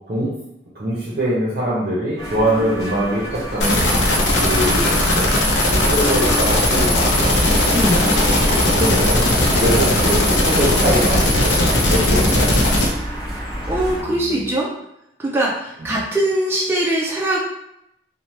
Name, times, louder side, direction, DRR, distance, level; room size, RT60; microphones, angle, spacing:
voice 1, 0.8-3.9 4.4-7.1 8.1-8.2 8.8-9.2 9.6-11.2 11.8-12.6, equal, 50° right, -6 dB, 0.6 m, -22 dB
sound 1, 2.2-14.0, right 1 dB, 20° left, 1.0 m, -29 dB
sound 2, 3.6-12.9, left 1 dB, 90° left, 0.6 m, -17 dB
voice 2, 7.7-8.1 10.0-10.1 12.2-12.4 13.7-14.7 15.2-17.4, right 1 dB, 15° right, -4 dB, 0.3 m, -22 dB
2.9 x 2.0 x 3.1 m, 0.80 s
head